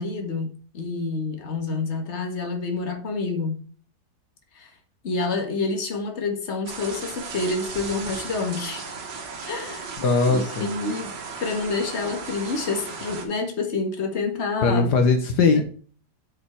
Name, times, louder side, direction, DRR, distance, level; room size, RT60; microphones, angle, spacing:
voice 1, 0.0-3.6 4.6-4.7 5.0-9.0 9.5-9.9 10.3-11.1 11.4-14.9, left 3 dB, 40° left, 1.8 m, -28 dB
sound 1, 6.7-13.3, right 4 dB, 85° right, 2.1 m, -36 dB
voice 2, 10.0-10.7 14.6-15.6, left 4 dB, 70° left, 1.6 m, -20 dB
7.2 x 5.2 x 4.4 m
omnidirectional pair, 1.8 m